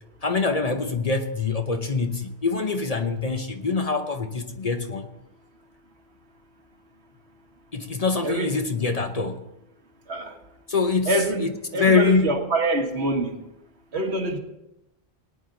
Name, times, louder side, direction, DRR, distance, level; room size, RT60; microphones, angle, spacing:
voice 1, 0.2-5.1 7.7-9.5 10.7-12.5, left 4 dB, 40° left, 6 dB, 0.8 m, -24 dB
voice 2, 8.2-8.5 10.1-10.3 11.0-11.5 11.7-13.3 13.9-14.4, right 1 dB, 80° right, 3 dB, 1.8 m, -25 dB
18.5 x 9.4 x 3.9 m, 0.90 s
omnidirectional pair, 1.1 m